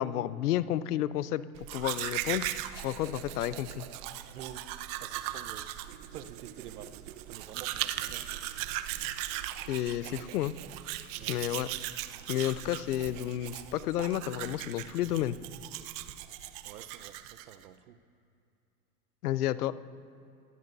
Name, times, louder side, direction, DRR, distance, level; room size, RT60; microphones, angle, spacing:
voice 1, 0.0-2.5 2.8-3.8 9.7-10.5 11.3-11.7 12.3-15.4 19.2-19.7, left 12 dB, 85° left, 16 dB, 0.7 m, -31 dB
Domestic sounds home sounds, 1.6-17.6, right 13 dB, 50° right, 0.9 m, -39 dB
voice 2, 4.3-4.7 5.0-5.7 6.1-8.6 11.2-11.7 16.6-18.0, right 9 dB, 85° right, 12 dB, 1.0 m, -48 dB
28.0 x 18.5 x 2.7 m, 2.6 s
hypercardioid pair, 105°, 44 cm